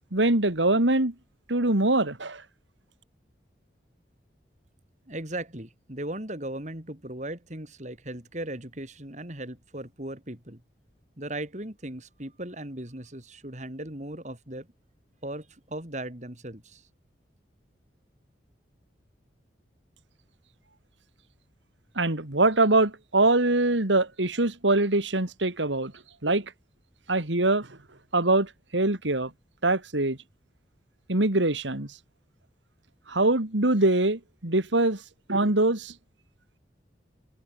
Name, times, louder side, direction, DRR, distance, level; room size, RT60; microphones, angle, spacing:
voice 1, 0.1-1.1 1.5-2.4 22.0-25.9 26.2-26.4 27.1-27.7 28.1-29.3 29.6-30.2 31.1-31.9 33.1-35.0 35.3-35.9, right 2 dB, 90° right, 2.9 m, -23 dB
voice 2, 5.1-10.6 11.2-14.7 15.2-16.8, right 1 dB, 40° right, 4.1 m, -37 dB
head